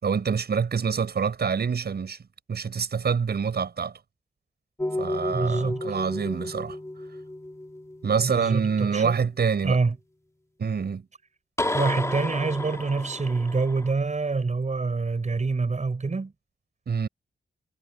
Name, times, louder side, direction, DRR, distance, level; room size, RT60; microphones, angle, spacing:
voice 1, 0.0-2.2 2.5-4.0 5.0-6.8 8.0-9.8 10.6-11.0 16.9-17.1, right 6 dB, 60° right, 7.7 m, -26 dB
sound 1, 4.8-9.1 11.6-13.9, left 1 dB, 15° left, 2.7 m, -32 dB
voice 2, 5.3-5.8 8.2-9.2 9.6-10.0 11.7-16.3, right 4 dB, 40° right, 7.0 m, -26 dB
cardioid pair, 60°, 18 cm